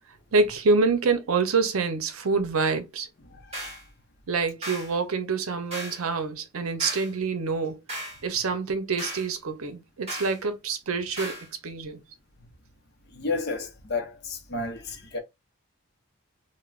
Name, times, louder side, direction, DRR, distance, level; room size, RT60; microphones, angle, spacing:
voice 1, 0.3-3.1 4.3-12.0, right 4 dB, 80° right, 0.6 m, -26 dB
voice 2, 3.2-3.8 12.4-12.5 13.1-15.2, left 3 dB, 50° left, 0.7 m, -32 dB
sound 1, 3.5-3.8 4.6-4.9 5.7-6.0 6.8-7.1 7.9-8.2 9.0-9.3 10.1-10.4 11.2-11.5, equal, 30° right, 1.8 m, -36 dB
3.3 x 2.1 x 2.4 m
head